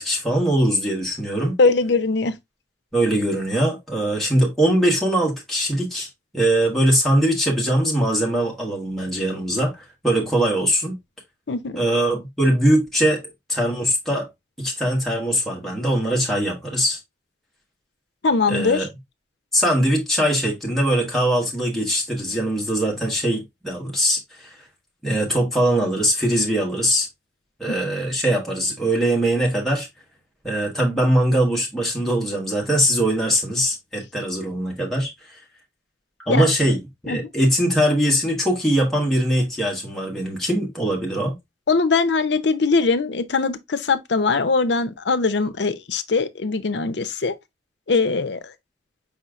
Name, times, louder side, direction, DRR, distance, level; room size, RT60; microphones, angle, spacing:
voice 1, 0.0-1.6 2.9-6.1 6.3-11.0 11.7-13.2 13.5-14.3 14.6-17.0 18.5-18.9 19.5-24.6 25.0-27.1 27.6-29.9 30.4-35.1 36.3-41.3, right 1 dB, ahead, 1.3 m, -21 dB
voice 2, 1.6-2.3 11.5-11.8 18.2-18.8 36.3-36.4 37.1-37.2 41.7-47.3 47.9-48.4, left 4 dB, 75° left, 0.6 m, -21 dB
4.9 x 4.3 x 2.4 m
head